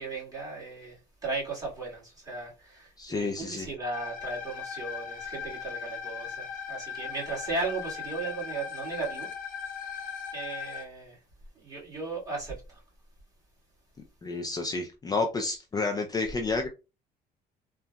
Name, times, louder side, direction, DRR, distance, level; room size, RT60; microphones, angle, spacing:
voice 1, 0.0-9.3 9.7-10.1 10.3-11.2 11.6-12.8, right 3 dB, 20° right, 1.7 m, -36 dB
voice 2, 3.0-3.7 14.2-16.7, left 3 dB, 20° left, 0.4 m, -30 dB
sound 1, 3.9-10.9, left 7 dB, 60° left, 0.8 m, -38 dB
3.7 x 2.2 x 2.2 m
cardioid pair, 110°, 17 cm